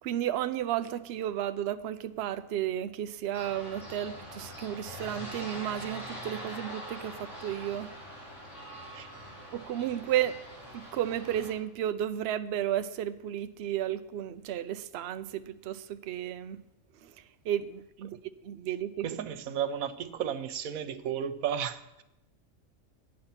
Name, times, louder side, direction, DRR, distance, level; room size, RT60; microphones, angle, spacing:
voice 1, 0.0-7.9 9.5-10.5 10.7-16.6 17.0-18.2 18.4-19.1, right 11 dB, 65° right, 0.7 m, -33 dB
sound 1, 3.3-11.5, equal, 60° left, 5.3 m, -43 dB
voice 2, 19.0-22.0, right 9 dB, 90° right, 1.1 m, -33 dB
10.5 x 8.7 x 5.7 m
omnidirectional pair, 1.4 m